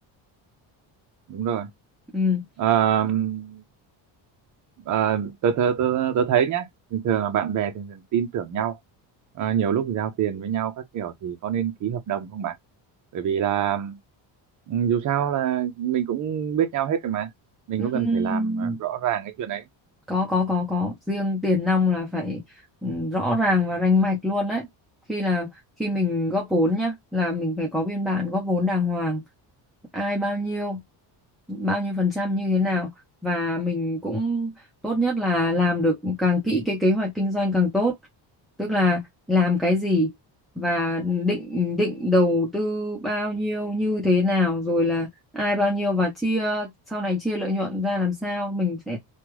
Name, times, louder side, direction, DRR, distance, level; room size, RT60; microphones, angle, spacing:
voice 1, 1.3-1.7 2.6-3.6 4.8-8.8 9.3-12.6 13.1-14.0 14.7-17.3 17.7-19.6, right 9 dB, 40° right, 0.7 m, -25 dB
voice 2, 2.1-2.4 17.8-18.8 20.1-22.4 22.8-24.7 25.1-25.5 25.8-29.2 29.9-30.8 31.5-32.9 33.2-34.5 34.8-38.0 38.6-39.0 39.3-40.1 40.6-45.1 45.3-49.0, left 2 dB, ahead, 0.5 m, -24 dB
3.3 x 2.3 x 2.9 m
cardioid pair, 155°, 45 cm